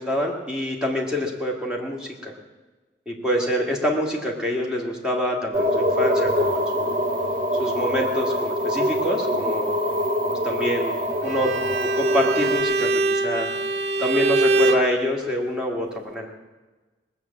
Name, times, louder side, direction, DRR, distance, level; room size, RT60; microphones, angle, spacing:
voice 1, 0.0-2.3 3.1-7.0 7.6-9.7 10.4-11.5 11.8-13.5 14.0-16.3, left 1 dB, 5° right, -2 dB, 2.2 m, -26 dB
sound 1, 5.5-12.6, equal, 50° right, 2.1 m, -24 dB
Bowed string instrument, 11.2-14.9, right 2 dB, 75° right, 0.8 m, -22 dB
19.0 x 7.4 x 8.5 m, 1.2 s
head